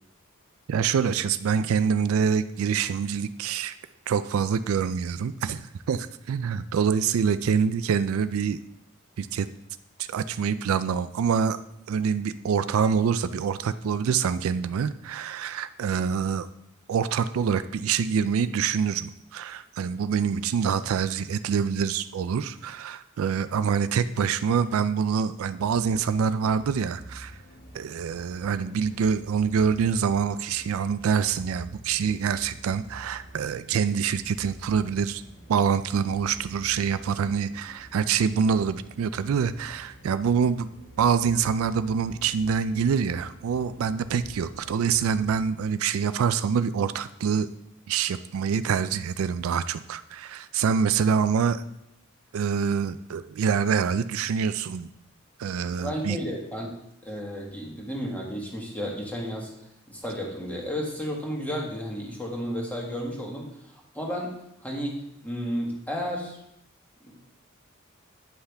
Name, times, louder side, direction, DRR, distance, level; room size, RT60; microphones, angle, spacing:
voice 1, 0.7-3.8 4.1-8.6 9.2-9.5 10.0-11.6 11.9-16.5 16.9-27.3 27.7-35.2 35.5-40.7 41.0-47.5 47.9-51.6 52.3-54.9 55.4-56.2, right 6 dB, 75° right, 13 dB, 0.3 m, -25 dB
sound 1, 25.5-45.4, equal, 60° left, 2.5 m, -48 dB
voice 2, 55.8-56.7 57.0-59.5 59.9-66.4 67.1-67.2, equal, 10° left, -2 dB, 1.6 m, -33 dB
9.6 x 5.6 x 3.4 m, 0.79 s
head